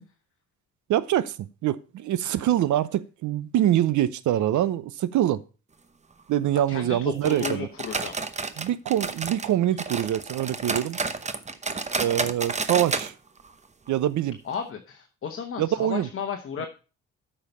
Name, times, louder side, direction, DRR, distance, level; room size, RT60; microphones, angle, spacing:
voice 1, 0.9-1.4 1.6-5.4 6.3-7.7 8.6-11.0 12.0-13.1 13.9-14.4 15.6-16.1 16.6-16.7, right 12 dB, 75° right, 0.8 m, -24 dB
voice 2, 6.7-8.1 14.4-16.7, left 7 dB, 45° left, 1.1 m, -33 dB
sound 1, 7.2-9.5 9.8-13.1 13.4-13.5 13.9-14.0 14.5-14.6, right 4 dB, 25° right, 0.8 m, -30 dB
8.4 x 5.8 x 5.4 m
cardioid pair, 90°, 30 cm